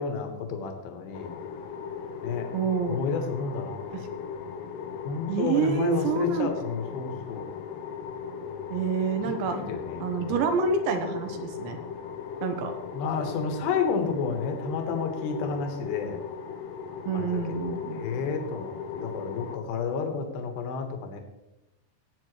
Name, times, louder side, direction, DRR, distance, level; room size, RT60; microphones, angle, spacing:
voice 1, 0.0-1.3 2.2-2.5 2.9-4.0 5.0-7.5 9.5-10.5 12.9-16.2 17.1-21.2, left 5 dB, 65° left, 4 dB, 2.7 m, -31 dB
sound 1, 1.1-19.6, left 6 dB, 80° left, 2.3 m, -38 dB
voice 2, 2.5-3.0 3.9-4.1 5.3-6.5 8.7-9.6 10.0-11.8 12.4-12.7 17.1-18.0, right 5 dB, 75° right, 6 dB, 3.2 m, -27 dB
19.0 x 8.5 x 3.2 m, 0.94 s
omnidirectional pair, 5.7 m